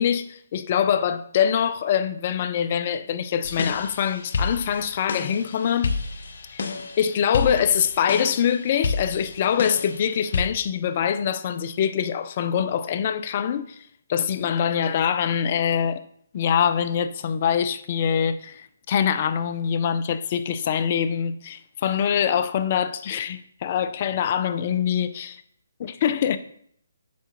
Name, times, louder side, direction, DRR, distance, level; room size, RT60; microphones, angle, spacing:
voice 1, 0.0-5.9 6.5-6.6 7.0-13.8 14.1-16.0 16.3-25.4 25.8-26.4, left 8 dB, 35° left, 0.5 m, -24 dB
sound 1, 3.4-10.4, left 4 dB, 60° left, 1.0 m, -30 dB
8.4 x 6.8 x 3.0 m
hypercardioid pair, 155°, 0 cm